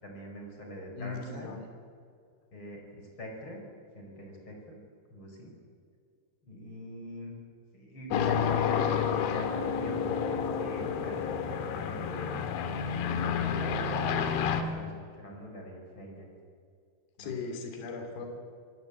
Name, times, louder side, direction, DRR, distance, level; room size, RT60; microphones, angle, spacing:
voice 1, 0.0-1.5 2.5-3.6 3.9-4.8 5.1-5.5 6.4-7.3 7.7-10.1 10.6-11.2 11.5-12.3 12.9-16.3 17.2-17.4, equal, 25° left, 1 dB, 5.0 m, -43 dB
voice 2, 1.0-1.6 17.2-18.3, left 4 dB, 55° left, 4 dB, 4.5 m, -38 dB
sound 1, 8.1-14.6, left 7 dB, 80° left, 3.8 m, -30 dB
26.0 x 18.5 x 8.1 m, 2.2 s
omnidirectional pair, 5.4 m